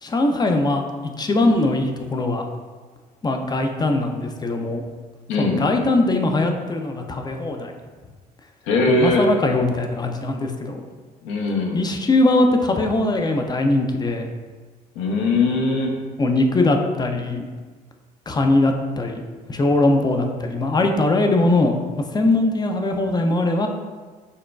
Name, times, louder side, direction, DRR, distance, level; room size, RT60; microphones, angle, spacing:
voice 1, 0.0-2.5 3.2-4.8 5.4-7.7 8.9-10.8 11.7-14.3 16.2-17.4 18.3-21.7 22.1-23.7, left 2 dB, 20° left, 4 dB, 0.5 m, -21 dB
voice 2, 5.3-5.6 8.6-9.2 11.2-11.8 15.0-15.9, left 2 dB, 70° left, 0 dB, 0.7 m, -20 dB
6.4 x 2.2 x 2.3 m, 1.4 s
hypercardioid pair, 55°, 21 cm